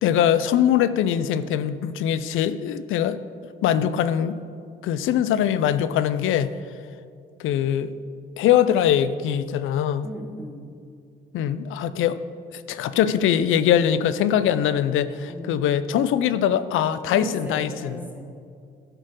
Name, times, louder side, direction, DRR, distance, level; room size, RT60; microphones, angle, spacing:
voice 1, 0.0-3.2 3.6-4.4 4.8-6.5 7.4-8.0 8.4-10.1 11.3-12.2 12.7-18.0, left 10 dB, 80° left, 14 dB, 0.5 m, -22 dB
voice 2, 10.0-10.7 15.3-15.6 17.1-18.3, right 1 dB, 10° right, 0 dB, 2.0 m, -37 dB
11.5 x 4.3 x 6.4 m, 2.4 s
supercardioid pair, 55°, 20 cm